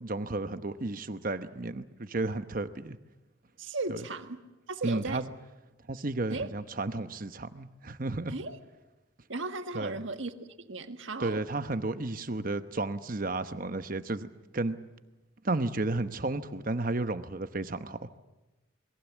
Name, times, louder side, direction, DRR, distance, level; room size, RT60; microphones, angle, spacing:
voice 1, 0.0-3.0 3.9-4.0 4.8-5.2 5.9-8.4 9.7-10.0 11.2-14.3 14.5-14.8 15.4-18.0, right 2 dB, 40° right, 10 dB, 0.9 m, -32 dB
voice 2, 3.6-4.4 4.7-5.2 6.3-6.5 8.3-8.6 9.3-11.4, right 3 dB, 70° right, 7 dB, 1.6 m, -36 dB
28.0 x 22.0 x 7.3 m, 1.0 s
head